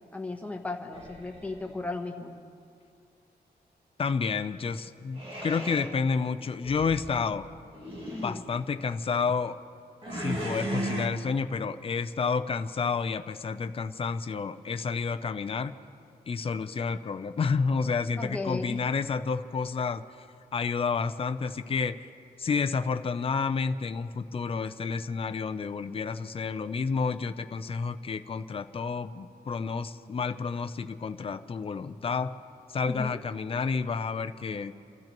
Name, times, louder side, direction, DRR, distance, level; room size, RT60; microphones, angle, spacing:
voice 1, 0.1-2.4 8.1-8.4 18.2-18.8 32.8-33.2, left 3 dB, 10° left, 2 dB, 1.0 m, -35 dB
sound 1, 0.9-1.8 5.2-5.9 6.6-7.1 7.7-8.4 10.0-11.1, right 1 dB, 30° right, 1.9 m, -35 dB
voice 2, 4.0-7.5 8.2-9.6 10.1-15.7 16.3-20.0 20.5-22.1 22.4-32.3 32.7-34.7, left 5 dB, 35° left, 9 dB, 0.5 m, -30 dB
30.0 x 13.0 x 3.0 m, 2.5 s
wide cardioid pair, 170°, 17 cm